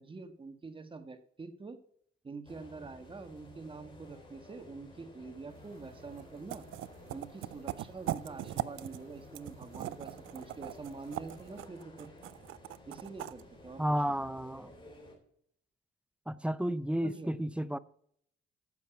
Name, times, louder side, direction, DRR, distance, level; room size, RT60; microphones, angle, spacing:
voice 1, 0.0-1.8 2.2-6.6 7.1-12.1 12.8-13.8 17.0-17.3, right 4 dB, 25° right, 1.4 m, -46 dB
sound 1, 2.4-15.1, left 1 dB, 25° left, 3.9 m, -54 dB
sound 2, 5.5-11.7, right 4 dB, 50° right, 3.4 m, -60 dB
sound 3, 6.2-6.3 6.5-9.0 9.3-13.4, right 15 dB, 85° right, 0.5 m, -39 dB
voice 2, 13.8-14.7 16.3-17.8, equal, 5° right, 0.5 m, -32 dB
9.7 x 7.1 x 5.7 m
cardioid pair, 90°, 20 cm